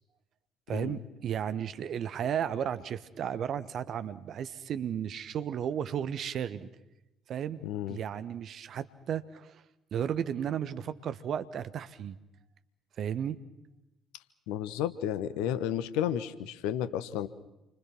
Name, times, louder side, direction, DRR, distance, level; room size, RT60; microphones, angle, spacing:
voice 1, 0.7-6.7 7.3-7.6 7.9-9.6 9.9-12.2 13.0-13.4, right 9 dB, 50° right, 13 dB, 1.2 m, -34 dB
voice 2, 7.6-8.0 14.5-17.3, left 10 dB, 65° left, 13 dB, 1.2 m, -32 dB
29.0 x 25.0 x 6.1 m, 0.94 s
figure-of-eight pair, 50°, 0 cm